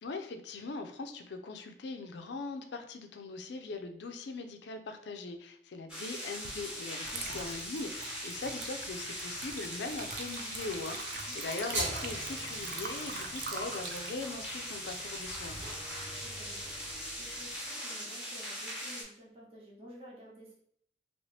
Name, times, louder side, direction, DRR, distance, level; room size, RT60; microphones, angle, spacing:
voice 1, 0.0-15.6, left 3 dB, 70° left, 6 dB, 0.4 m, -41 dB
sound 1, 5.9-19.0, equal, 5° right, 1.0 m, -41 dB
Water / Liquid, 6.4-6.6 7.0-15.6, right 4 dB, 50° right, 0.4 m, -44 dB
sound 2, 11.7-17.6, right 1 dB, 70° right, 0.9 m, -43 dB
voice 2, 16.0-20.5, equal, 30° right, -5 dB, 0.9 m, -53 dB
2.9 x 2.8 x 3.2 m, 0.67 s
head